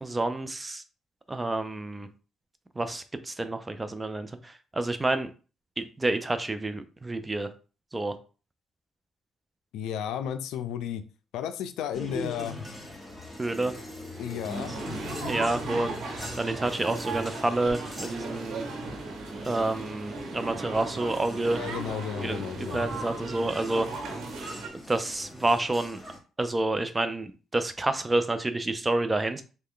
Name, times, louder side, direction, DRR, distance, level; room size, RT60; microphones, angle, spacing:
voice 1, 0.0-0.8 1.3-2.1 2.8-5.3 5.8-7.5 7.9-8.1 13.4-13.7 15.3-16.0 16.4-18.7 19.4-21.6 22.2-23.9 24.7-26.0 26.4-29.4, right 2 dB, 20° right, 10 dB, 0.4 m, -29 dB
voice 2, 9.7-11.0 11.3-12.6 14.2-14.7 21.5-22.8, left 9 dB, 90° left, 11 dB, 0.3 m, -33 dB
sound 1, 11.9-26.2, left 1 dB, ahead, 1.2 m, -42 dB
sound 2, 14.5-24.7, right 3 dB, 70° right, 0.8 m, -37 dB
3.2 x 2.2 x 3.6 m, 0.36 s
cardioid pair, 90°, 0 cm